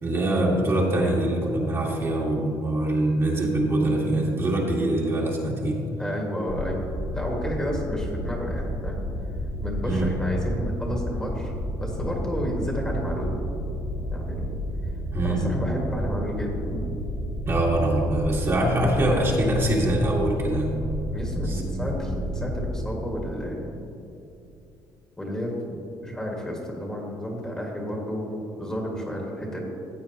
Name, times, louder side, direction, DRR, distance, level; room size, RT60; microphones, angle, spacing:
voice 1, 0.0-5.8 9.8-10.1 15.1-15.6 17.4-20.8 21.4-21.8, right 1 dB, 30° right, -3 dB, 1.8 m, -24 dB
voice 2, 6.0-6.8 7.1-9.0 9.6-11.5 11.8-13.3 14.1-14.5 15.2-16.8 21.1-23.8 25.2-29.6, equal, 10° left, -1 dB, 1.8 m, -31 dB
sound 1, 6.5-22.8, equal, 85° left, 2.5 m, -31 dB
15.0 x 8.6 x 2.9 m, 2.7 s
cardioid pair, 125°, 8 cm